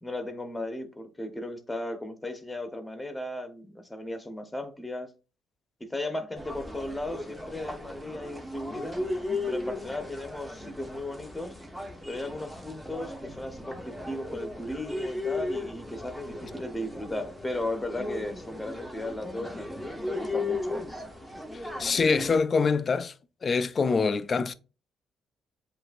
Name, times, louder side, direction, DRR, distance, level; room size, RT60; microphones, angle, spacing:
voice 1, 0.0-5.1 5.9-9.0 9.5-11.5 12.1-20.9, left 1 dB, 15° left, 1.2 m, -36 dB
sound 1, 6.3-22.4, left 2 dB, 5° right, 1.4 m, -36 dB
voice 2, 21.5-23.1 23.4-24.5, left 4 dB, 40° left, 0.4 m, -25 dB
7.6 x 2.6 x 2.6 m
cardioid pair, 75°, 0 cm